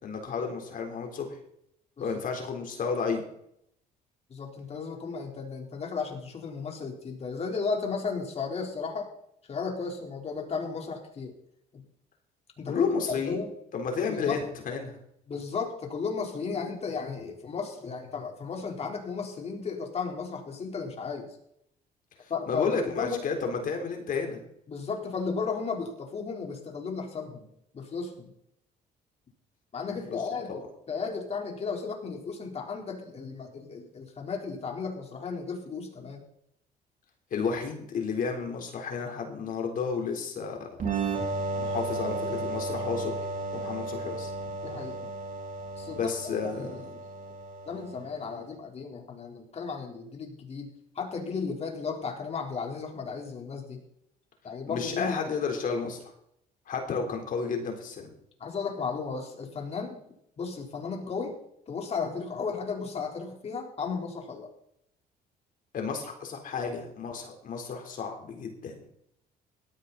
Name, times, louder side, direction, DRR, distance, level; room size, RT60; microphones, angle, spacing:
voice 1, 0.0-1.3 2.0-3.2 12.7-13.4 13.7-15.0 22.5-24.4 29.9-30.2 30.5-30.7 37.3-40.8 41.6-43.1 43.5-44.3 45.9-46.8 54.7-56.1 56.7-58.1 65.7-68.8, left 5 dB, 55° left, 3 dB, 3.8 m, -32 dB
voice 2, 4.3-9.1 9.5-11.3 11.7-11.8 12.6-12.9 13.3-13.5 14.1-14.4 15.3-21.3 22.3-22.6 22.9-23.2 24.7-27.5 27.7-28.3 29.7-36.2 44.5-45.0 45.8-46.1 46.4-46.8 47.7-50.7 51.0-53.8 54.4-55.3 58.4-60.0 60.4-61.3 61.7-64.5, left 5 dB, 40° left, 1 dB, 4.0 m, -34 dB
sound 1, 40.8-48.3, right 3 dB, 55° right, 4.6 m, -34 dB
17.5 x 13.5 x 4.2 m, 0.73 s
cardioid pair, 110°, 17 cm